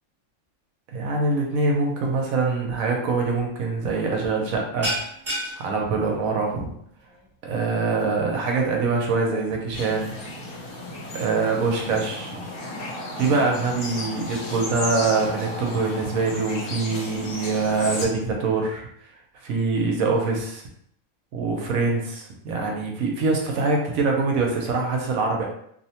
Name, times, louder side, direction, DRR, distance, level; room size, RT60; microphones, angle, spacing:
voice 1, 0.9-5.0 5.6-6.7 7.4-10.1 11.1-12.4 13.0-18.9 19.4-20.6 21.3-25.4, right 3 dB, 80° right, 0 dB, 1.0 m, -24 dB
sound 1, 3.2-3.5 3.8-4.0 4.3-11.2, equal, 35° right, 1.2 m, -36 dB
sound 2, 9.7-18.1, left 1 dB, 90° left, 1.2 m, -34 dB
2.8 x 2.0 x 2.8 m, 0.69 s
omnidirectional pair, 1.5 m